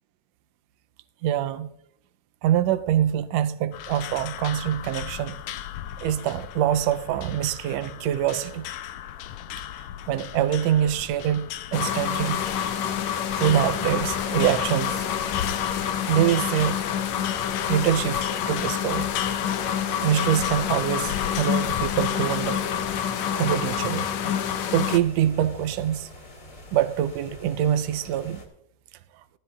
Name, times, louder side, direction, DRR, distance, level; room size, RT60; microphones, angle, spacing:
voice 1, 1.2-1.7 2.4-5.4 6.0-8.7 10.1-12.4 13.4-15.0 16.1-16.8 17.7-19.1 19.9-22.6 23.3-24.1 24.7-26.1 26.7-28.4, right 11 dB, 80° right, 1.6 m, -24 dB
sound 1, 3.7-23.0, left 10 dB, 90° left, 1.3 m, -37 dB
sound 2, 11.7-25.0, left 9 dB, 70° left, 2.0 m, -27 dB
sound 3, 22.3-28.5, left 1 dB, 30° left, 2.3 m, -46 dB
19.0 x 12.5 x 2.4 m
omnidirectional pair, 3.3 m